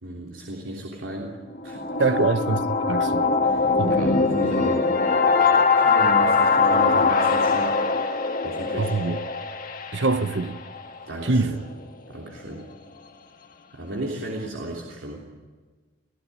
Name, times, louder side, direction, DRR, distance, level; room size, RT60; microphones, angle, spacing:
voice 1, 0.0-1.4 1.6-1.9 3.4-5.3 5.8-7.8 8.4-8.9 10.1-10.2 11.1-11.6 12.1-12.6 13.7-15.2, right 1 dB, 80° right, 3.2 m, -34 dB
sound 1, 1.5-11.4, left 4 dB, 45° left, 1.4 m, -22 dB
voice 2, 2.0-3.4 3.8-4.0 8.8-9.2 9.9-10.6 11.2-11.6, right 3 dB, 65° right, 0.9 m, -24 dB
26.5 x 15.5 x 9.6 m
head